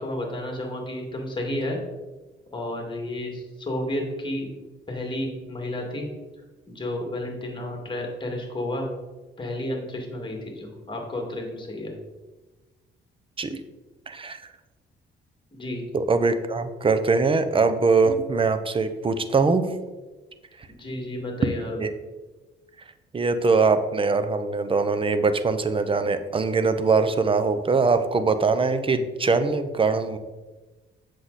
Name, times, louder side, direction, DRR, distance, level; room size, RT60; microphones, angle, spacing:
voice 1, 0.0-1.8 2.5-4.5 4.9-6.1 6.7-8.9 9.4-11.9 15.5-15.8 20.8-21.8, left 1 dB, 25° left, 1 dB, 2.3 m, -31 dB
voice 2, 14.1-14.4 15.9-19.6 21.8-21.9 23.1-30.2, right 4 dB, 25° right, 10 dB, 0.7 m, -22 dB
7.8 x 6.5 x 4.1 m, 1.2 s
cardioid pair, 90°, 20 cm